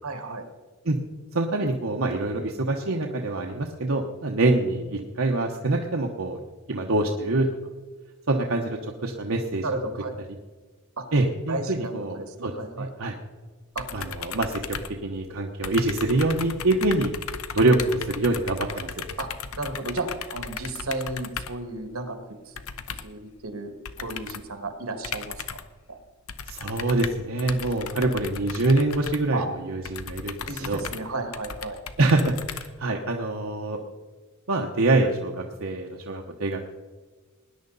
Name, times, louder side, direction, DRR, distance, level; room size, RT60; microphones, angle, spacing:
voice 1, 0.0-0.5 9.6-10.1 11.0-11.1 11.5-12.9 13.8-13.9 19.2-19.3 19.6-20.1 20.3-22.2 22.4-22.6 23.0-23.7 24.0-25.6 25.9-26.0 29.3-29.5 30.5-31.8, right 2 dB, 85° right, 6 dB, 1.8 m, -33 dB
voice 2, 1.3-6.4 6.7-7.5 8.3-9.6 11.1-13.1 13.9-14.8 15.0-17.1 17.5-18.9 26.5-29.4 29.7-30.8 32.0-33.8 34.5-36.7, right 2 dB, 70° right, 1 dB, 1.0 m, -25 dB
sound 1, 13.8-15.4 15.6-21.7 22.5-23.2 23.8-24.5 25.0-25.8 26.3-33.1, left 7 dB, 80° left, 0.8 m, -36 dB
19.5 x 10.0 x 4.0 m, 1.3 s
head